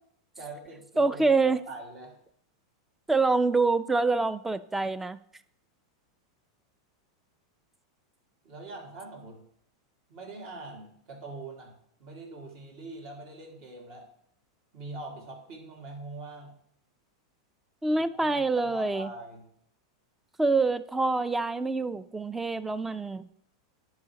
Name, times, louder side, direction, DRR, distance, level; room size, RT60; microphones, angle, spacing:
voice 1, 0.4-2.2 8.4-9.5 10.1-11.7 12.0-14.1 14.7-16.6 18.1-19.4, right 2 dB, 55° right, 0 dB, 2.2 m, -43 dB
voice 2, 1.0-1.6 3.1-5.2 17.8-19.1 20.4-23.3, right 3 dB, 10° right, 14 dB, 0.4 m, -26 dB
10.5 x 4.9 x 2.9 m, 0.67 s
hypercardioid pair, 120°, 2 cm